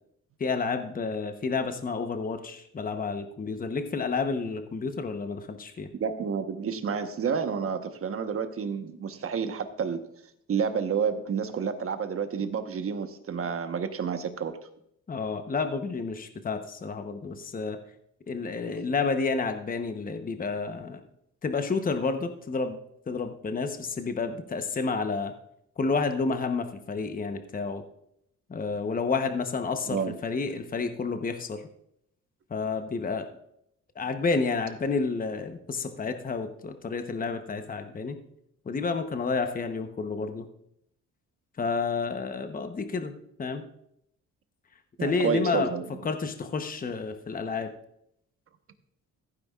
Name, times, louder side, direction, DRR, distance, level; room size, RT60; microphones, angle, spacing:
voice 1, 0.4-5.9 15.1-17.8 18.3-21.0 21.4-22.8 23.1-25.3 25.8-27.8 28.5-31.6 32.5-33.3 34.0-38.2 38.7-40.5 41.6-43.6 45.0-45.7 46.0-47.7, left 4 dB, 30° left, 7 dB, 1.0 m, -30 dB
voice 2, 6.0-10.0 10.5-14.6 29.9-30.1 45.0-45.8, right 6 dB, 50° right, 8 dB, 1.2 m, -30 dB
15.0 x 9.6 x 2.4 m, 0.74 s
cardioid pair, 90°, 30 cm